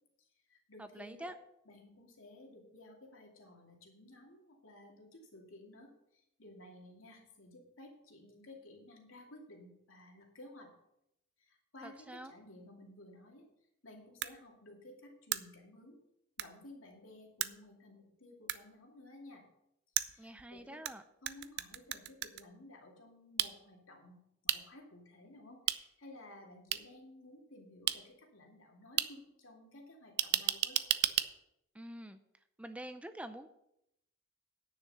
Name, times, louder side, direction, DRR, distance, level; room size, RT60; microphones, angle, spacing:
voice 1, 0.2-1.3 1.6-10.7 11.4-13.5 13.8-16.0 16.4-19.4 20.0-20.8 21.2-30.8, left 1 dB, 80° left, 1 dB, 2.6 m, -55 dB
voice 2, 0.8-1.3 11.8-12.3 20.2-21.0 31.7-32.2 32.6-33.5, right 1 dB, 5° right, 10 dB, 0.5 m, -46 dB
sound 1, 14.2-14.3 15.3-15.4 16.4-16.5 17.4-17.5 18.5-18.6 20.0-20.9 21.3-22.4 23.4-23.5 24.5-24.6 25.7-25.8 26.7-26.8 27.9-28.0 29.0-29.1 30.2-31.3, right 12 dB, 55° right, 0.5 m, -32 dB
10.0 x 6.5 x 6.8 m, 0.81 s
head